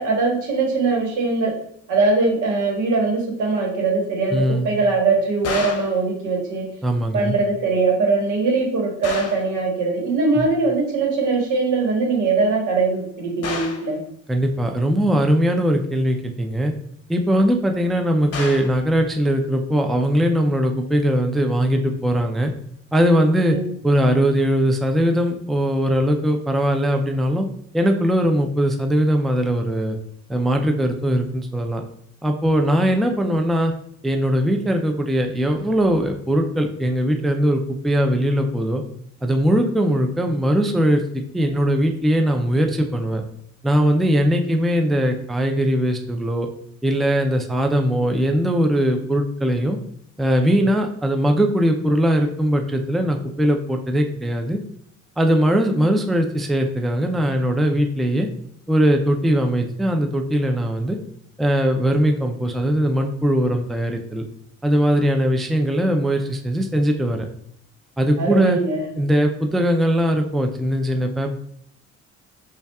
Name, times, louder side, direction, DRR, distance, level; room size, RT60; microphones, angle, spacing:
voice 1, 0.0-1.5 1.9-6.7 7.1-14.0 23.5-23.7 33.2-33.3 68.2-68.9, right 3 dB, 85° right, 0 dB, 1.2 m, -21 dB
voice 2, 4.3-4.7 6.8-7.4 10.4-10.5 14.3-16.7 17.1-22.5 22.9-23.6 23.8-27.5 27.7-30.0 30.3-31.8 32.2-33.7 34.0-38.8 39.2-43.2 43.6-46.5 46.8-49.8 50.2-54.6 55.2-58.3 58.7-61.0 61.4-64.2 64.6-67.3 68.0-68.6 69.0-71.3, equal, ahead, 4 dB, 0.3 m, -20 dB
sound 1, 5.4-6.0 9.0-9.5 13.4-13.9 18.3-18.8, left 4 dB, 55° left, 0.7 m, -30 dB
5.2 x 2.4 x 2.3 m, 0.69 s
cardioid pair, 90°, 30 cm